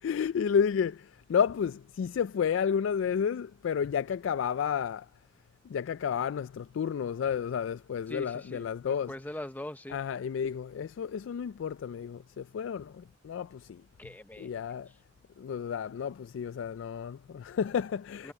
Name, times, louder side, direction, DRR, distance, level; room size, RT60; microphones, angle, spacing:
voice 1, 0.0-5.1 5.6-9.2 9.9-13.8 14.4-14.9 15.4-18.3, left 7 dB, 85° left, 0.3 m, -31 dB
voice 2, 8.1-8.7 9.1-10.0 14.0-14.5 18.2-18.3, left 1 dB, 10° left, 0.6 m, -41 dB
head